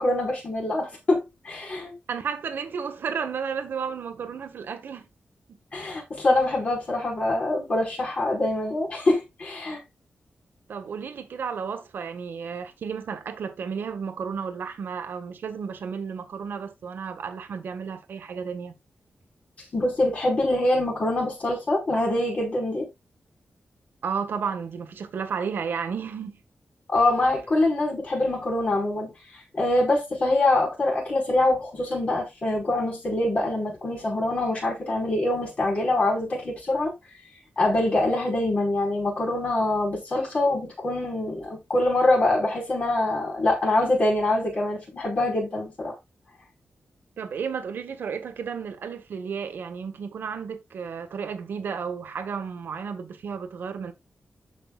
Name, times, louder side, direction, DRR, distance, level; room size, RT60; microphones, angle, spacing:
voice 1, 0.0-1.9 5.7-9.8 19.7-22.9 26.9-29.1 29.5-36.9 37.6-45.9, left 2 dB, 40° left, 5.0 m, -24 dB
voice 2, 2.1-5.1 5.5-5.6 10.7-18.7 24.0-26.4 47.2-53.9, right 6 dB, 85° right, 1.7 m, -33 dB
14.5 x 5.8 x 2.4 m
wide cardioid pair, 165°, 3 cm